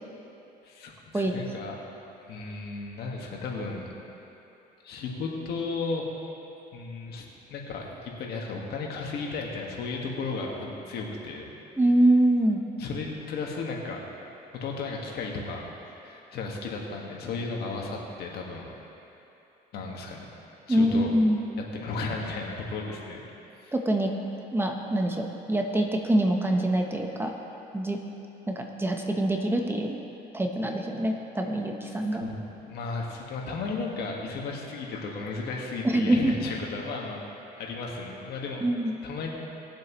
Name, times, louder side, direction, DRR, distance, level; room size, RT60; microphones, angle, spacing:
voice 1, 0.6-1.8 2.3-3.9 4.8-6.3 6.7-11.5 12.8-14.0 14.5-15.6 16.0-18.7 19.7-20.3 20.7-21.1 21.7-23.2 23.6-23.7 31.9-32.4 32.6-37.2 37.6-38.7 39.0-39.3, left 3 dB, 70° left, -1 dB, 1.7 m, -34 dB
voice 2, 11.8-12.6 20.7-21.4 23.7-24.1 24.5-27.3 27.7-28.0 28.8-29.9 30.3-32.3 35.8-36.3 38.6-38.9, right 1 dB, 15° right, 2 dB, 1.0 m, -24 dB
19.5 x 7.5 x 3.1 m, 3.0 s
cardioid pair, 110°, 17 cm